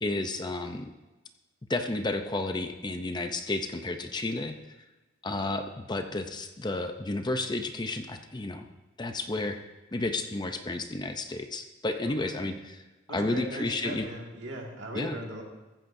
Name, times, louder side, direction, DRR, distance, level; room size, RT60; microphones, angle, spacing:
voice 1, 0.0-0.9 1.7-4.6 5.2-8.7 9.0-9.6 9.9-12.6 13.1-14.1 14.9-15.2, left 2 dB, 20° left, 6 dB, 0.6 m, -31 dB
voice 2, 12.1-12.4 13.1-15.4, right 1 dB, 65° right, 0 dB, 2.1 m, -38 dB
15.0 x 14.5 x 2.7 m, 1.1 s
head